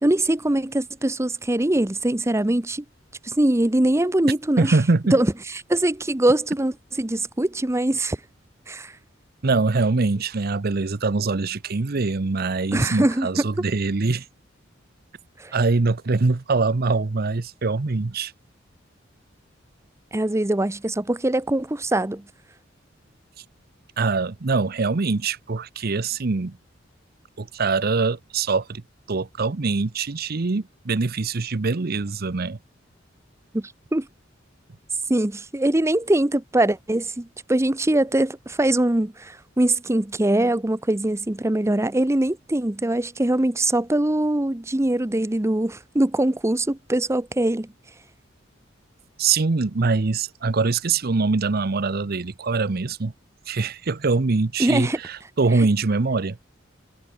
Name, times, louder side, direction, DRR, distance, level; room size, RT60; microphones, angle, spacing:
voice 1, 0.0-2.8 3.2-4.7 5.1-5.3 5.7-8.2 8.7-8.9 12.7-13.5 15.4-15.5 20.1-22.2 33.5-34.1 35.1-47.7 54.6-55.0, right 1 dB, 15° right, 0.8 m, -22 dB
voice 2, 4.6-5.2 9.4-14.3 15.5-18.3 24.0-26.6 27.4-28.8 29.1-32.6 49.2-53.1 53.5-56.4, right 3 dB, 50° right, 0.7 m, -23 dB
head